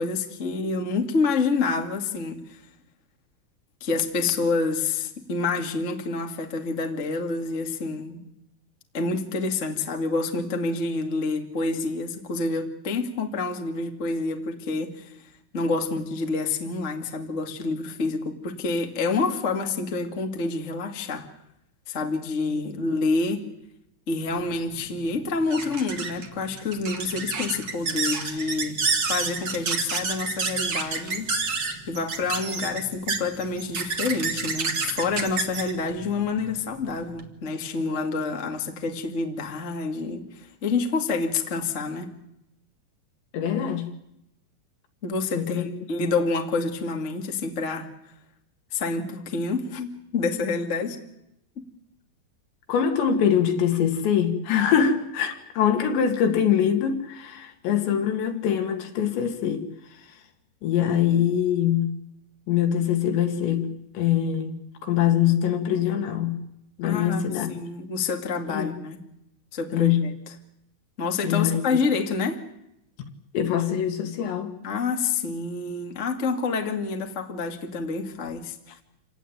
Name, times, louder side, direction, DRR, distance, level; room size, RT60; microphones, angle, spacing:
voice 1, 0.0-2.6 3.8-8.2 8.9-15.1 15.5-21.3 21.9-23.4 24.1-42.1 45.0-47.9 48.7-51.0 51.5-51.6 66.8-69.0 69.5-70.3 71.0-72.4 74.6-78.8, left 4 dB, 35° left, 4 dB, 1.2 m, -28 dB
sound 1, 24.4-37.3, right 4 dB, 45° right, 1.4 m, -30 dB
voice 2, 43.3-43.9 45.3-45.7 52.7-59.7 60.6-61.9 62.5-66.4 66.8-67.5 68.5-68.7 69.7-70.1 71.2-71.6 73.3-74.5, left 9 dB, 70° left, 5 dB, 4.2 m, -23 dB
27.5 x 17.5 x 9.3 m, 0.82 s
omnidirectional pair, 5.4 m